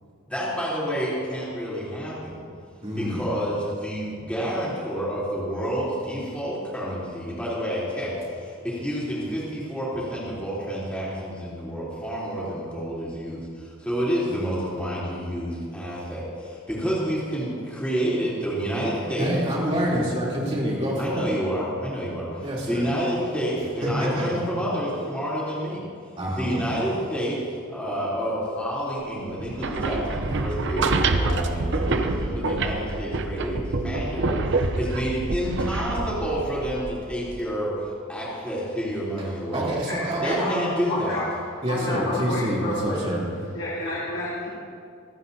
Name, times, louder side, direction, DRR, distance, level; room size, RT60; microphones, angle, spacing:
voice 1, 0.3-2.4 2.9-19.3 21.0-25.8 26.4-39.8 40.2-41.2, equal, 5° left, -8 dB, 3.5 m, -29 dB
voice 2, 2.8-3.2 19.2-21.2 22.4-22.9 23.8-24.4 26.2-26.7 39.5-40.5 41.6-43.2, equal, 30° right, -6 dB, 3.3 m, -27 dB
sound 1, 29.4-37.4, right 3 dB, 60° right, 0.7 m, -26 dB
voice 3, 39.9-40.5 40.9-41.3 41.7-43.0 43.5-44.5, left 1 dB, 65° left, -9 dB, 3.2 m, -30 dB
26.0 x 9.4 x 2.8 m, 2.3 s
head